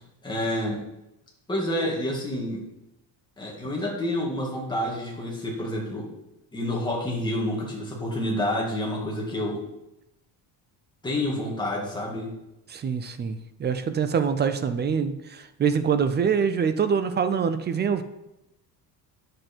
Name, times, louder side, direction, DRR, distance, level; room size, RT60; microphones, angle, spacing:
voice 1, 0.2-0.8 1.5-2.6 3.4-6.1 6.5-9.6 11.0-12.4, left 1 dB, 10° left, -3 dB, 2.2 m, -28 dB
voice 2, 12.7-18.0, right 6 dB, 25° right, 10 dB, 0.5 m, -25 dB
9.8 x 7.8 x 4.5 m, 0.90 s
cardioid pair, 175°, 42 cm